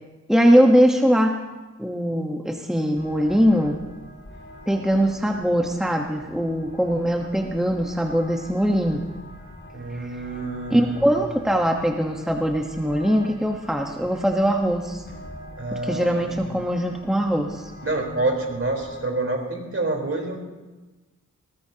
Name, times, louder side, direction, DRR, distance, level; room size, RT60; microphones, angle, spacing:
voice 1, 0.3-1.4 1.8-3.8 4.7-9.0 9.9-10.0 10.7-15.0 15.8-17.7, equal, ahead, 1 dB, 1.2 m, -21 dB
sound 1, 2.9-19.1, equal, 35° left, 6.3 m, -43 dB
voice 2, 9.7-11.2 15.6-16.6 17.8-20.4, right 2 dB, 45° right, 1 dB, 4.1 m, -28 dB
21.0 x 19.0 x 2.9 m, 1.2 s
wide cardioid pair, 60°, 31 cm